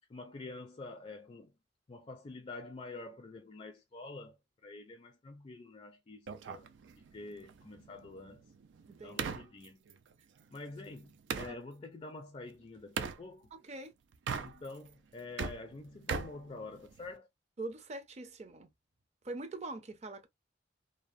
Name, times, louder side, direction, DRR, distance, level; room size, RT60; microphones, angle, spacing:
voice 1, 0.1-1.5 1.9-6.7 7.0-8.4 9.0-9.8 10.5-13.5 14.4-17.3, left 3 dB, 30° left, 0.4 m, -47 dB
sound 1, 6.3-11.6 13.0-13.2 14.1-14.9 15.2-17.2, right 5 dB, 85° right, 0.4 m, -40 dB
voice 2, 8.9-9.2 11.4-11.5 13.5-13.9 17.6-18.7 19.2-20.3, right 2 dB, 35° right, 0.5 m, -43 dB
2.7 x 2.0 x 2.5 m
head